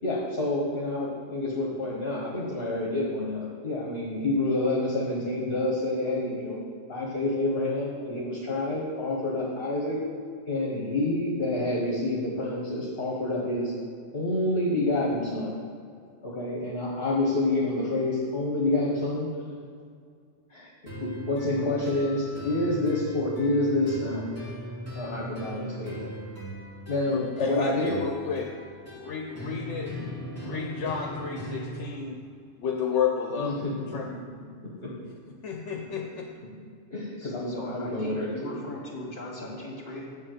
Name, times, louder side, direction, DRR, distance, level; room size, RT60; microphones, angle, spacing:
voice 1, 0.0-6.6 6.9-10.0 10.5-13.7 14.1-15.5 16.2-19.3 20.5-24.2 24.9-26.1 26.9-27.9 29.9-30.1 33.4-33.7 34.6-34.9 35.9-36.1 36.9-38.5, left 2 dB, 55° left, -4 dB, 1.7 m, -28 dB
sound 1, 20.9-31.9, right 1 dB, 10° right, 3.0 m, -39 dB
voice 2, 27.1-28.5 28.9-29.9 30.4-32.2 32.6-34.1 35.4-36.3, left 6 dB, 75° left, 2 dB, 1.1 m, -31 dB
voice 3, 37.2-40.2, left 1 dB, 40° left, -3 dB, 2.6 m, -39 dB
7.6 x 7.5 x 7.9 m, 2.3 s
omnidirectional pair, 1.2 m